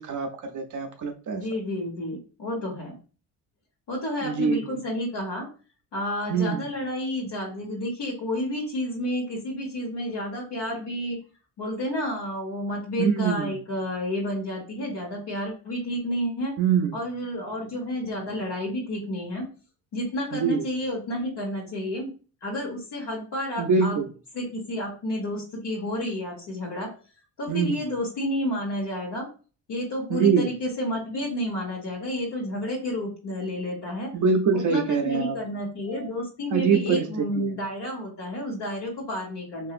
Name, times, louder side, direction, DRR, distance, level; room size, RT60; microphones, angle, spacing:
voice 1, 0.0-1.4 4.2-4.8 6.3-6.7 13.0-13.6 16.6-17.0 20.3-20.7 23.6-24.1 27.5-27.8 30.1-30.5 34.1-35.4 36.5-37.6, right 5 dB, 45° right, 3 dB, 0.5 m, -24 dB
voice 2, 1.3-2.9 3.9-5.5 5.9-11.2 11.6-16.5 16.9-19.5 19.9-22.1 22.4-24.0 24.3-26.9 27.4-29.3 29.7-34.1 34.5-39.7, left 1 dB, 65° left, -3 dB, 1.1 m, -30 dB
2.9 x 2.5 x 2.4 m, 0.36 s
cardioid pair, 95°, 44 cm